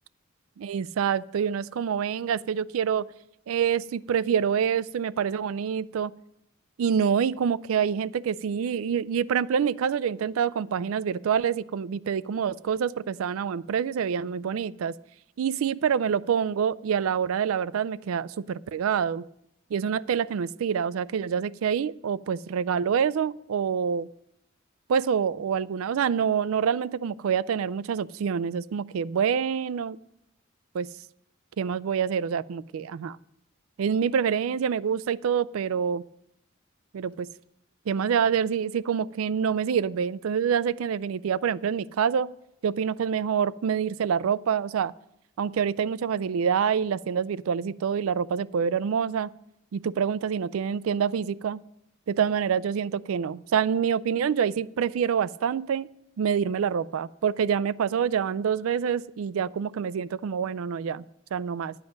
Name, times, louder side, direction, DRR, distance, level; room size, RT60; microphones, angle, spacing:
voice 1, 0.6-3.1 3.5-6.1 6.8-14.9 15.4-19.2 19.7-24.1 24.9-30.0 30.7-30.9 31.6-33.2 33.8-36.0 36.9-37.3 37.9-42.3 42.6-44.9 45.4-49.3 49.7-51.6 52.1-55.9 56.2-61.0 61.3-61.7, right 7 dB, 85° right, 19 dB, 0.4 m, -26 dB
11.5 x 9.0 x 5.2 m, 0.79 s
head